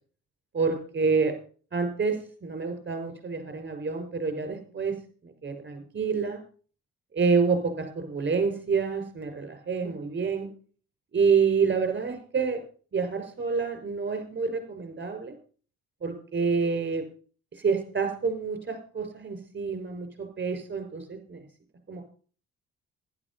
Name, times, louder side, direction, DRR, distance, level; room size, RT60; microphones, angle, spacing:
voice 1, 0.5-1.3 1.7-5.0 5.2-6.4 7.1-10.5 11.1-12.6 12.9-15.3 16.0-17.0 17.6-21.4 21.9-22.0, right 5 dB, 35° right, 6 dB, 5.8 m, -28 dB
11.5 x 11.0 x 5.6 m, 0.41 s
cardioid pair, 90°, 30 cm